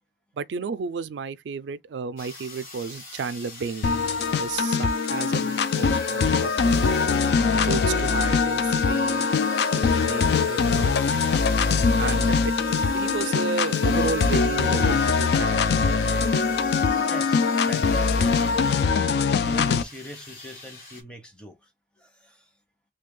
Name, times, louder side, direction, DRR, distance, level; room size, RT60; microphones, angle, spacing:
voice 1, 0.4-3.9 4.4-7.0 7.5-9.3 9.7-11.3 12.0-12.5 12.9-15.6, right 5 dB, 90° right, 0.4 m, -32 dB
sound 1, 2.2-21.0, left 3 dB, 55° left, 1.0 m, -43 dB
sound 2, 3.8-19.8, left 5 dB, 70° left, 0.3 m, -22 dB
sound 3, 5.6-17.8, left 2 dB, 85° left, 0.8 m, -38 dB
voice 2, 17.1-19.0 19.4-21.7 22.0-22.4, equal, 5° left, 0.7 m, -42 dB
3.2 x 2.3 x 3.6 m
head